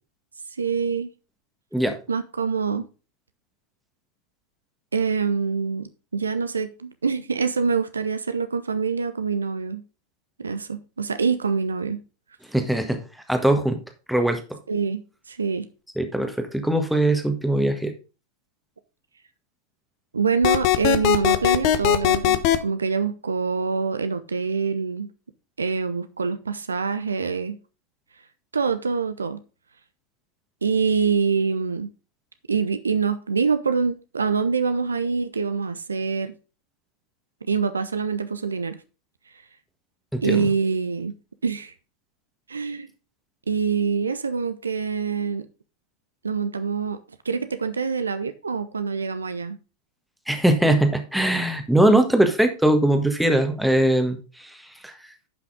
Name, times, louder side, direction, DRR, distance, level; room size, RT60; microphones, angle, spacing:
voice 1, 0.6-1.1 2.1-2.9 4.9-9.8 10.4-12.0 14.7-15.7 20.1-25.1 25.6-27.6 28.5-29.4 30.6-31.9 32.5-36.3 37.4-38.8 40.2-41.1 41.4-41.7 42.5-42.9 43.5-45.5 46.2-47.0 47.2-49.6, right 5 dB, 75° right, 0.7 m, -25 dB
voice 2, 12.5-13.0 13.3-13.8 14.1-14.6 16.0-17.9 40.1-40.5 50.3-54.9, right 1 dB, ahead, 1.5 m, -21 dB
sound 1, 20.4-22.6, left 13 dB, 45° left, 0.9 m, -19 dB
10.5 x 5.8 x 3.7 m
figure-of-eight pair, 90°, 0 cm